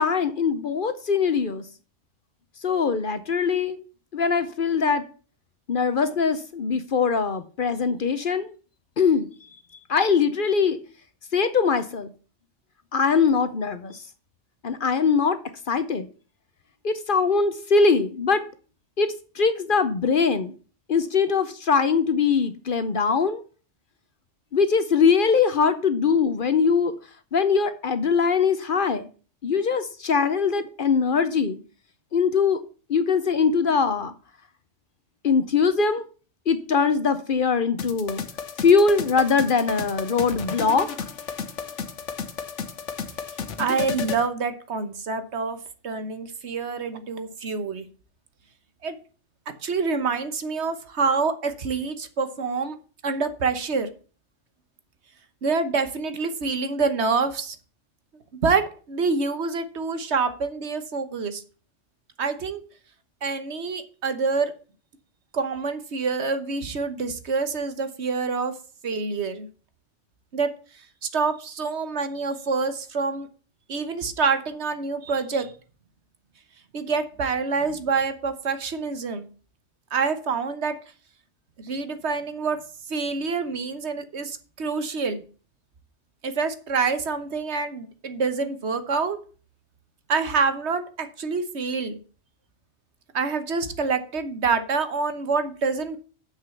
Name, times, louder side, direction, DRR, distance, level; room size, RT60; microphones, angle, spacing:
voice 1, 0.0-1.6 2.6-3.8 4.1-5.0 5.7-8.5 9.0-9.3 9.9-10.8 11.3-12.1 12.9-14.0 14.6-15.4 15.7-16.1 16.8-18.4 19.0-20.5 20.9-23.4 24.5-26.9 27.3-29.1 29.4-31.6 32.1-32.6 32.9-34.1 35.2-36.0 36.5-38.2 38.6-40.9, left 5 dB, 50° left, 0.9 m, -22 dB
sound 1, 37.8-44.3, left 6 dB, 75° left, 1.4 m, -33 dB
voice 2, 43.6-45.6 45.8-47.8 48.8-49.0 49.6-52.8 53.0-53.9 55.4-57.6 58.4-61.4 62.2-62.6 63.2-64.5 65.3-68.5 68.8-69.5 70.3-70.5 71.0-73.3 73.7-75.5 76.7-79.3 79.9-80.8 81.6-82.6 82.9-85.2 86.2-89.2 90.1-92.0 93.1-96.0, right 4 dB, 65° right, 1.4 m, -26 dB
7.4 x 6.4 x 7.0 m
omnidirectional pair, 1.2 m